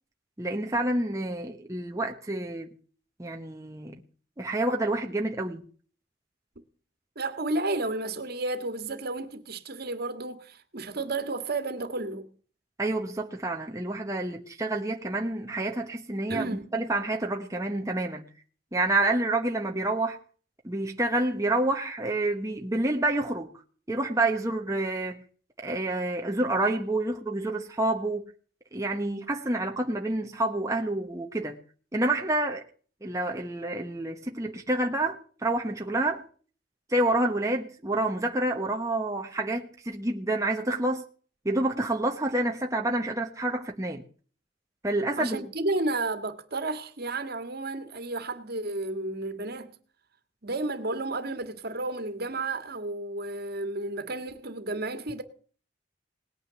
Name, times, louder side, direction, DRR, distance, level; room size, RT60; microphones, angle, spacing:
voice 1, 0.4-2.8 3.2-4.0 4.4-5.6 12.8-18.3 18.7-20.2 20.6-23.5 23.9-25.2 25.6-28.2 28.7-31.6 31.9-32.6 33.0-36.2 36.9-41.0 41.4-44.0 44.8-45.5, right 2 dB, 15° right, 1.1 m, -28 dB
voice 2, 7.1-12.3 16.3-16.7 45.2-49.7 50.4-55.2, right 2 dB, 55° right, 1.8 m, -32 dB
19.0 x 9.2 x 7.0 m
head